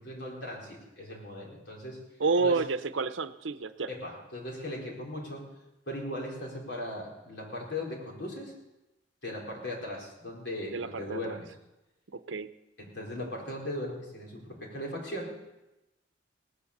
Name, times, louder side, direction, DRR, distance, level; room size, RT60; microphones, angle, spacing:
voice 1, 0.0-2.0 2.4-2.6 3.9-5.4 5.9-8.6 9.2-11.5 12.8-15.4, left 1 dB, 65° left, -2 dB, 4.5 m, -38 dB
voice 2, 2.2-3.9 10.7-11.4 12.1-12.5, right 4 dB, 90° right, 12 dB, 0.7 m, -29 dB
18.0 x 10.0 x 6.7 m, 0.97 s
head